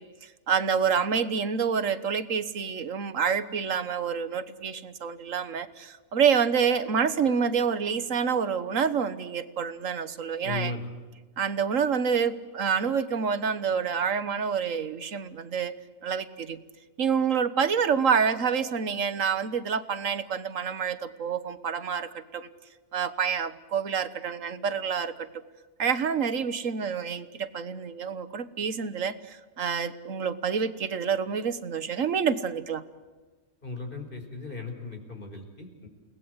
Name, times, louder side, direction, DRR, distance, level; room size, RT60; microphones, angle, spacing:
voice 1, 0.0-10.7 11.4-15.7 16.0-16.6 17.0-22.5 22.9-25.3 25.8-32.8, right 6 dB, 70° right, 13 dB, 1.6 m, -27 dB
voice 2, 10.4-10.9 33.6-35.9, left 3 dB, 40° left, 4 dB, 5.1 m, -36 dB
29.5 x 20.0 x 8.1 m, 1.3 s
omnidirectional pair, 1.4 m